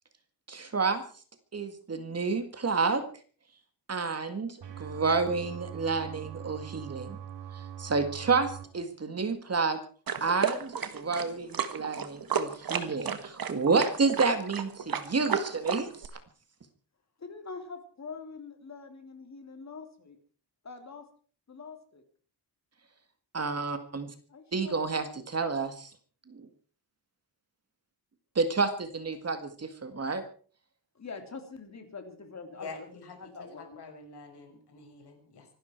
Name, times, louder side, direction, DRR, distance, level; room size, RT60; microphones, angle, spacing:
voice 1, 0.5-1.0 1.5-3.0 3.9-7.2 7.8-9.8 10.2-15.9 23.3-24.1 24.5-25.9 26.3-26.5 28.4-30.2, right 4 dB, 35° right, 9 dB, 2.0 m, -29 dB
sound 1, 4.6-8.6, right 9 dB, 90° right, 3.4 m, -42 dB
sound 2, 10.1-16.1, right 7 dB, 55° right, 1.7 m, -32 dB
voice 2, 17.2-20.2 20.6-21.0 21.5-22.0 24.3-25.2 30.9-32.9 33.2-33.8, left 4 dB, 40° left, 5 dB, 3.4 m, -44 dB
voice 3, 32.6-35.5, left 4 dB, 70° left, 4 dB, 5.4 m, -46 dB
25.5 x 12.0 x 4.6 m, 0.42 s
wide cardioid pair, 155°, 42 cm